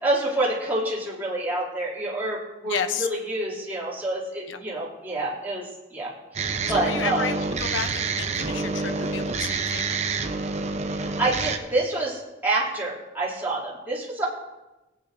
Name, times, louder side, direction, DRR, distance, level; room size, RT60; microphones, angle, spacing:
voice 1, 0.0-5.6 5.9-7.3 10.9-14.2, right 2 dB, 10° right, -8 dB, 2.7 m, -27 dB
voice 2, 2.7-3.1 4.5-4.6 6.8-10.0, left 6 dB, 75° left, 10 dB, 0.7 m, -32 dB
sound 1, 6.4-11.6, right 4 dB, 35° right, 0.7 m, -28 dB
18.5 x 8.9 x 2.6 m, 1.0 s
head